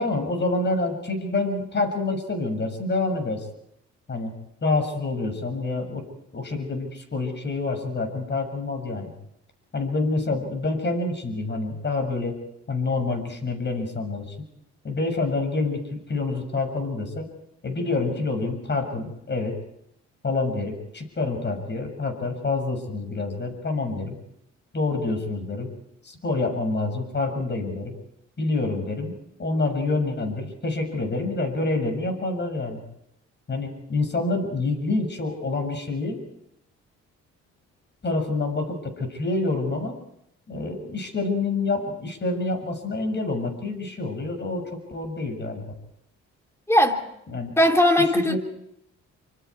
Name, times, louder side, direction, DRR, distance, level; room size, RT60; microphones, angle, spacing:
voice 1, 0.0-3.4 4.1-4.3 4.6-6.0 6.3-9.1 9.7-12.4 12.7-14.3 14.8-17.3 17.6-19.6 20.2-24.2 24.7-25.7 26.0-28.0 28.4-29.1 29.4-32.8 33.5-36.2 38.0-40.0 40.5-45.6 47.3-47.5 48.1-48.4, left 3 dB, 35° left, 6.9 m, -27 dB
voice 2, 46.7-47.0 47.6-48.4, left 1 dB, 10° left, 3.3 m, -18 dB
28.0 x 25.5 x 4.8 m
cardioid pair, 90°, 30 cm